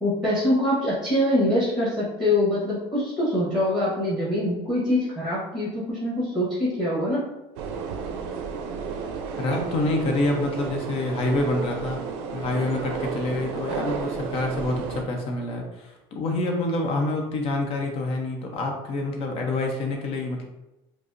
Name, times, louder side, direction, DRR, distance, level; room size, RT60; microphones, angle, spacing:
voice 1, 0.0-7.2, left 1 dB, ahead, -7 dB, 1.2 m, -24 dB
sound 1, 7.6-15.0, right 5 dB, 85° right, 0.4 m, -32 dB
voice 2, 9.4-12.0 12.3-20.5, left 2 dB, 50° left, 2 dB, 0.8 m, -27 dB
4.7 x 2.0 x 2.5 m, 0.97 s
supercardioid pair, 120°, 13 cm